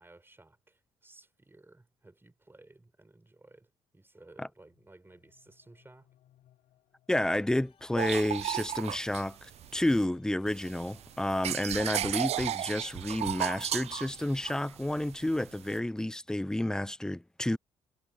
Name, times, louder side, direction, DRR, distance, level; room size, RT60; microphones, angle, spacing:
voice 1, 0.0-6.1, right 2 dB, 15° right, 5.6 m, -57 dB
sound 1, 4.5-8.3, left 13 dB, 70° left, 5.5 m, -69 dB
voice 2, 7.1-17.6, left 1 dB, 5° left, 0.5 m, -30 dB
sound 2, 7.2-14.6, left 6 dB, 45° left, 4.8 m, -64 dB
sound 3, 8.0-10.0 10.5-15.8, right 12 dB, 55° right, 0.4 m, -35 dB
hypercardioid pair, 55°, 13 cm